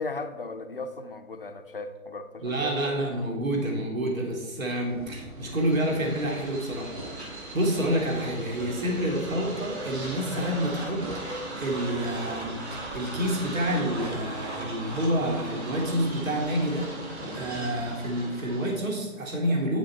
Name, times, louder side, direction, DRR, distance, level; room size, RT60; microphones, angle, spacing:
voice 1, 0.0-2.7, left 3 dB, 40° left, 7 dB, 0.6 m, -36 dB
voice 2, 2.4-6.9 7.5-19.8, equal, 65° right, 0 dB, 3.0 m, -28 dB
sound 1, 4.9-18.0, right 2 dB, 25° right, 1.4 m, -42 dB
sound 2, 5.4-18.9, right 2 dB, 50° right, 2.4 m, -39 dB
9.2 x 6.3 x 4.5 m, 1.2 s
hypercardioid pair, 170°, 44 cm